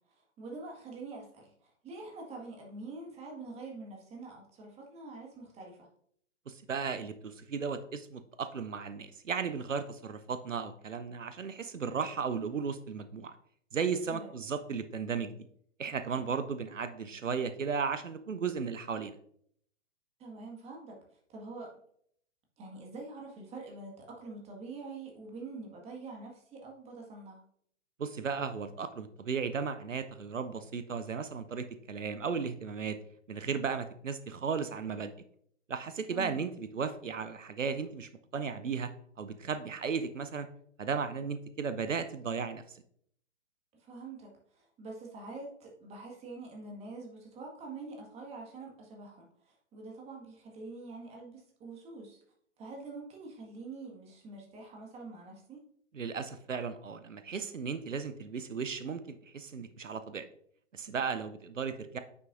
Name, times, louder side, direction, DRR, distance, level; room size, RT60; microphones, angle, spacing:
voice 1, 0.0-5.9 14.1-14.3 20.2-21.0 21.3-21.7 22.6-27.4 36.1-36.4 43.8-52.2 52.6-55.6, right 3 dB, 15° right, 0 dB, 1.7 m, -45 dB
voice 2, 6.5-13.4 13.7-15.4 15.8-19.2 28.0-33.0 33.3-35.1 35.7-38.9 39.2-40.5 40.8-42.8 55.9-60.3 60.7-62.0, right 5 dB, 85° right, 11 dB, 0.7 m, -35 dB
9.5 x 5.9 x 2.6 m, 0.66 s
figure-of-eight pair, 120°, 37 cm